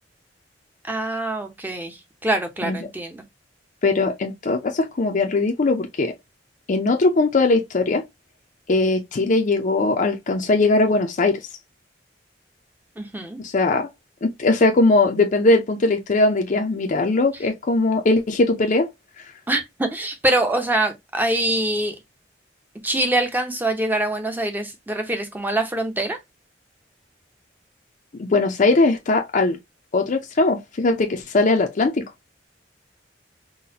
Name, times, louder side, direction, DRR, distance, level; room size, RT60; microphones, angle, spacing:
voice 1, 0.8-3.2 13.0-13.4 19.5-22.0 22.8-26.2, right 1 dB, 10° right, 0.7 m, -24 dB
voice 2, 3.8-6.1 6.7-8.0 8.7-11.4 13.4-13.9 14.2-18.9 19.2-19.3 28.2-29.6 29.9-32.1, left 2 dB, 45° left, 0.5 m, -20 dB
3.9 x 2.2 x 2.7 m
head